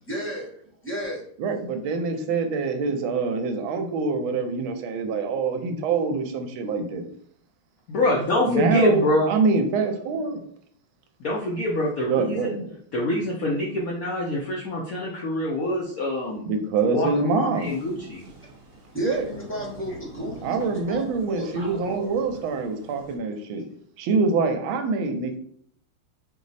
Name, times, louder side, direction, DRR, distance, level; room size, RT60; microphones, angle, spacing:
voice 1, 0.0-1.2 18.9-22.3, equal, 15° left, -4 dB, 0.4 m, -33 dB
voice 2, 1.4-7.0 8.4-10.4 12.1-12.7 16.5-17.7 19.0-19.2 20.4-23.6 24.0-25.4, right 4 dB, 75° right, 5 dB, 1.4 m, -25 dB
voice 3, 7.9-9.3 11.2-12.6 12.9-16.4 16.9-18.3, left 1 dB, 85° left, -3 dB, 0.7 m, -25 dB
sound 1, 17.5-23.2, right 2 dB, 50° right, 1.4 m, -45 dB
4.7 x 2.0 x 4.0 m, 0.64 s
omnidirectional pair, 2.4 m